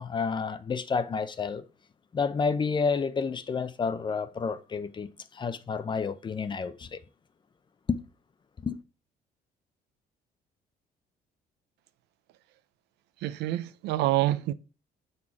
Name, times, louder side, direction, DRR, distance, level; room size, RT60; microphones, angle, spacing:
voice 1, 0.0-1.6 2.1-7.0 7.9-8.0 8.6-8.8, left 5 dB, 25° left, 0.6 m, -30 dB
voice 2, 13.2-14.5, right 15 dB, 85° right, 0.5 m, -27 dB
7.3 x 4.2 x 4.7 m
cardioid pair, 110°, 17 cm